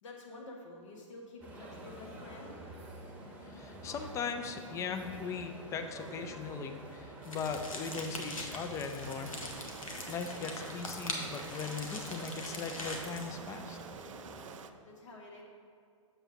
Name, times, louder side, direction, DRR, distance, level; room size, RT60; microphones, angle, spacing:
voice 1, 0.0-2.6 14.8-15.4, left 2 dB, 65° left, 0 dB, 1.4 m, -49 dB
sound 1, 1.4-14.6, right 1 dB, 10° right, 1.0 m, -48 dB
voice 2, 3.4-9.4 10.1-13.8, left 5 dB, 20° left, 6 dB, 0.4 m, -39 dB
sound 2, 7.2-13.3, left 2 dB, 85° left, 1.0 m, -42 dB
sound 3, 9.0-14.7, right 7 dB, 70° right, 0.4 m, -49 dB
7.1 x 7.0 x 2.8 m, 2.3 s
hypercardioid pair, 115°, 17 cm